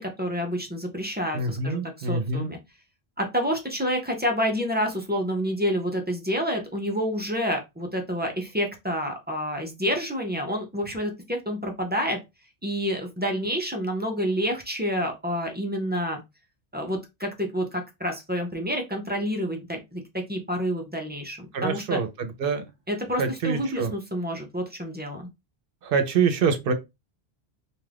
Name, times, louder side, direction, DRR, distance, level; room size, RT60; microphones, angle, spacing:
voice 1, 0.0-2.6 3.2-12.2 12.6-16.2 16.7-22.0 22.9-25.3, equal, 15° right, 0.3 m, -28 dB
voice 2, 1.3-2.5 21.5-22.1 22.4-22.6 23.2-23.9 25.9-26.7, right 5 dB, 65° right, 0.8 m, -25 dB
2.6 x 2.4 x 3.3 m
omnidirectional pair, 1.1 m